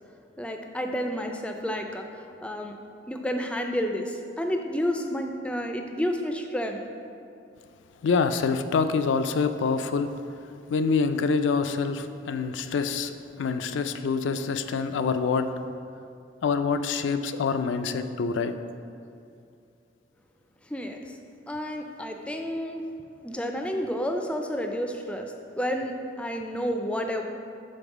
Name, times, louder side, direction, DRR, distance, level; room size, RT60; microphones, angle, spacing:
voice 1, 0.4-2.8 3.1-6.8 20.6-21.2 21.5-22.8 23.2-27.3, equal, 5° left, 4 dB, 0.3 m, -30 dB
voice 2, 8.0-10.1 10.7-15.5 16.4-18.5, left 5 dB, 80° left, 9 dB, 0.4 m, -26 dB
5.3 x 4.2 x 6.0 m, 2.6 s
head